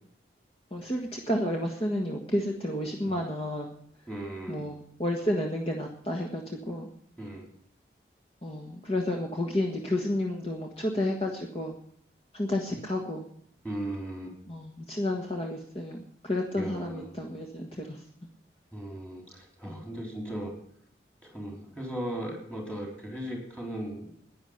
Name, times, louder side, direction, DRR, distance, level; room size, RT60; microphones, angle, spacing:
voice 1, 0.7-3.7 4.5-6.9 8.4-11.7 12.3-13.3 14.5-18.0 19.6-19.9, left 1 dB, 30° left, 0 dB, 1.5 m, -31 dB
voice 2, 4.1-4.6 7.2-7.5 13.6-14.3 16.6-17.0 18.7-20.5 21.2-24.1, right 1 dB, 5° left, 0 dB, 3.9 m, -37 dB
11.0 x 10.0 x 8.0 m, 0.67 s
head